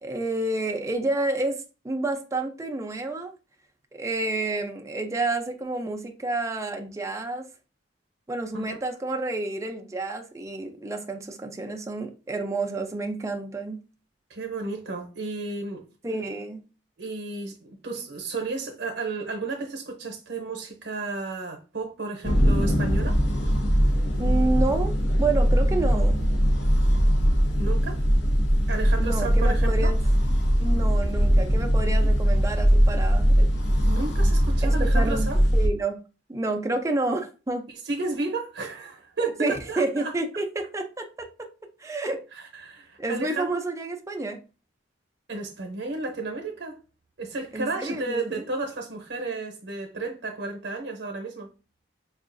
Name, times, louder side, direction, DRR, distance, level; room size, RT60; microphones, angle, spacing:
voice 1, 0.0-3.3 3.9-7.5 8.3-13.8 16.0-16.6 24.2-26.2 29.0-30.0 30.6-33.5 34.6-35.3 35.5-35.9 36.3-37.7 39.4-41.3 41.8-42.2 43.0-44.4 47.5-48.5, right 2 dB, 15° right, 0.4 m, -29 dB
voice 2, 14.3-15.8 17.0-23.2 27.6-28.0 28.7-29.9 31.9-32.2 33.8-35.4 37.8-40.1 42.3-43.5 45.3-46.8 47.2-51.5, right 3 dB, 75° right, 0.7 m, -33 dB
sound 1, 22.2-35.7, equal, 75° left, 0.7 m, -21 dB
4.6 x 2.4 x 2.5 m
head